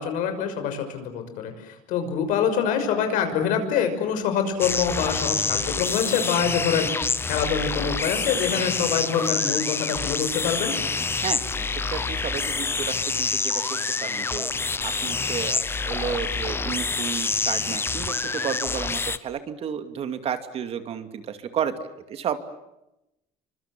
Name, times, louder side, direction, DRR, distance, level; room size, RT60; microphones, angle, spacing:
voice 1, 0.0-10.8, left 7 dB, 75° left, 7 dB, 6.1 m, -25 dB
sound 1, 4.6-19.2, left 4 dB, 15° left, 1.0 m, -27 dB
voice 2, 11.2-14.5 14.8-22.4, right 8 dB, 45° right, 9 dB, 2.5 m, -32 dB
30.0 x 25.0 x 7.6 m, 0.89 s
cardioid pair, 135°, 14 cm